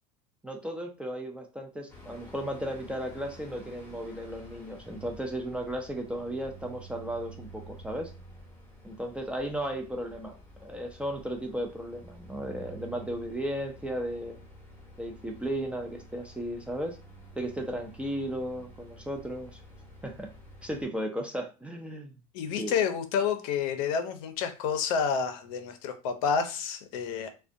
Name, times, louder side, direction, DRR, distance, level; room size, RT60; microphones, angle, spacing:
voice 1, 0.4-8.1 8.8-10.3 10.6-14.4 15.0-17.0 17.4-19.6 20.0-20.3 20.6-22.1 22.6-22.7, right 1 dB, 5° right, 2 dB, 0.3 m, -35 dB
sound 1, 1.9-20.8, right 1 dB, 10° left, 0.7 m, -50 dB
voice 2, 22.3-27.3, left 6 dB, 70° left, 8 dB, 0.5 m, -29 dB
2.4 x 2.1 x 2.5 m, 0.31 s
supercardioid pair, 125°, 18 cm